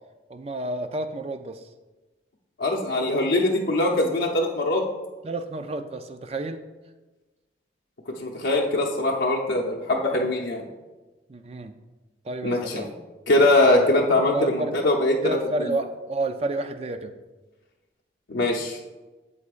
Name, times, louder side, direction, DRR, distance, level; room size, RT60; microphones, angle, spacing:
voice 1, 0.3-1.6 5.2-6.6 11.3-11.7 12.2-12.9 14.2-14.7 15.2-17.1, right 2 dB, 35° right, 8 dB, 0.4 m, -30 dB
voice 2, 2.6-4.8 8.2-10.6 12.4-12.8 13.3-15.8 18.3-18.8, left 2 dB, 85° left, 0 dB, 0.7 m, -22 dB
8.1 x 7.5 x 2.5 m, 1.2 s
head